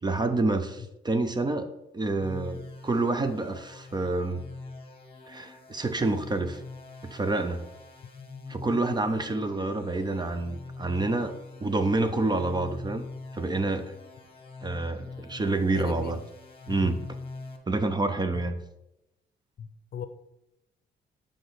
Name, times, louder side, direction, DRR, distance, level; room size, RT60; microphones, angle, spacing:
voice 1, 0.0-4.4 5.3-6.6 7.0-7.6 8.5-11.3 11.6-13.0 13.3-13.9 14.6-16.2 16.7-17.0 17.7-18.5, right 2 dB, 20° right, 9 dB, 0.6 m, -28 dB
sound 1, 2.2-17.6, left 3 dB, 25° left, 1.2 m, -44 dB
voice 2, 15.7-16.2 16.7-16.9 18.3-18.4 19.6-20.1, left 7 dB, 55° left, 10 dB, 0.6 m, -38 dB
6.6 x 5.0 x 4.0 m, 0.88 s
cardioid pair, 90°, 20 cm